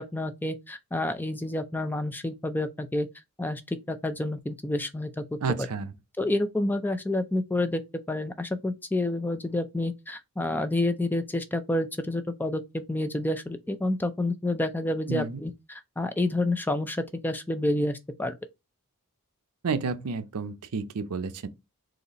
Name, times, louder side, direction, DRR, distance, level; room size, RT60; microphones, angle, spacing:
voice 1, 0.0-3.1 3.4-5.7 6.2-7.8 8.1-18.3, left 1 dB, 10° left, 0.4 m, -29 dB
voice 2, 5.4-5.9 15.1-15.4 19.6-21.5, right 4 dB, 80° right, 0.6 m, -30 dB
4.0 x 2.7 x 4.0 m
head